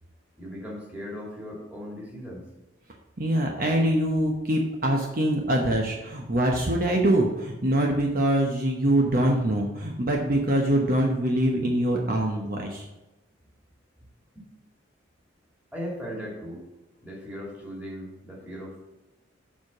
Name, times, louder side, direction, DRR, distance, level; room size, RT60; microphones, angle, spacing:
voice 1, 0.4-2.5 14.4-14.5 15.7-16.6 17.0-18.8, equal, 5° right, -4 dB, 2.4 m, -38 dB
voice 2, 3.2-12.8, right 1 dB, 45° right, 0 dB, 0.9 m, -24 dB
7.3 x 4.8 x 7.2 m, 1.0 s
head